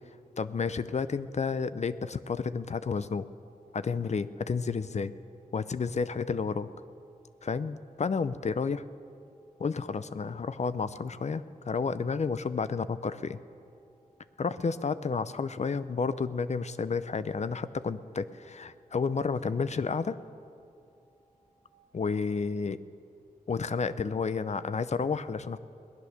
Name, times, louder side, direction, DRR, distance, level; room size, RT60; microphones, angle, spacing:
voice 1, 0.4-3.3 3.7-5.1 5.5-6.7 7.4-8.8 9.6-13.4 14.4-20.2 21.9-22.8 23.5-25.6, left 5 dB, 50° left, 14 dB, 0.6 m, -31 dB
sound 1, 3.4-21.7, right 1 dB, 90° right, 2.1 m, -70 dB
19.0 x 10.5 x 6.6 m, 2.5 s
wide cardioid pair, 75°, 15 cm